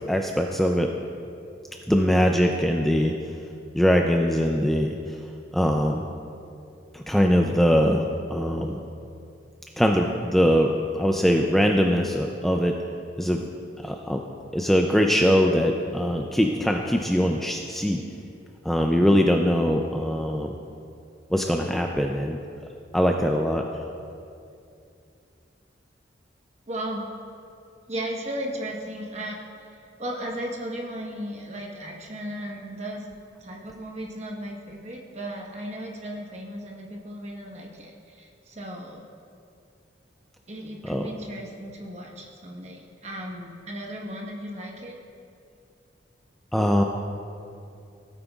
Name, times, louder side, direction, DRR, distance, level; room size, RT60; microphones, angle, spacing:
voice 1, 0.1-0.9 1.9-3.1 3.7-5.0 5.5-6.1 6.9-8.0 8.3-8.8 9.8-12.7 13.2-13.4 13.8-14.2 14.5-18.0 18.6-20.6 21.3-22.4 22.9-23.6 40.8-41.1 46.5-46.8, equal, ahead, 2 dB, 0.3 m, -22 dB
voice 2, 26.7-27.0 27.9-29.4 30.0-33.1 33.4-39.1 40.5-45.0, right 1 dB, 35° right, -1 dB, 1.2 m, -35 dB
16.0 x 8.9 x 2.4 m, 2.6 s
head